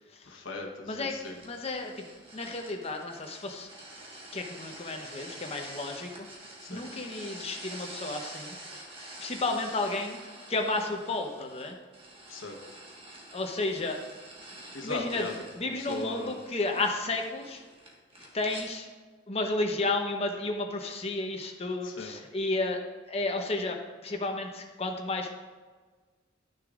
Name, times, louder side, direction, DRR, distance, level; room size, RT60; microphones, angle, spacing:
voice 1, 0.2-1.4 6.6-6.8 12.3-12.8 14.7-15.3 15.6-16.4 21.8-22.1, left 2 dB, 85° left, 1 dB, 1.0 m, -39 dB
sound 1, 1.2-18.7, right 1 dB, 30° right, 1.4 m, -47 dB
voice 2, 1.4-2.0 2.3-3.7 4.3-6.3 6.7-8.6 9.0-10.2 10.5-11.8 13.3-14.0 14.8-15.3 15.6-17.6 18.2-18.9 19.3-22.8 23.1-25.3, left 2 dB, 30° left, 3 dB, 0.8 m, -32 dB
11.5 x 6.5 x 2.5 m, 1.4 s
head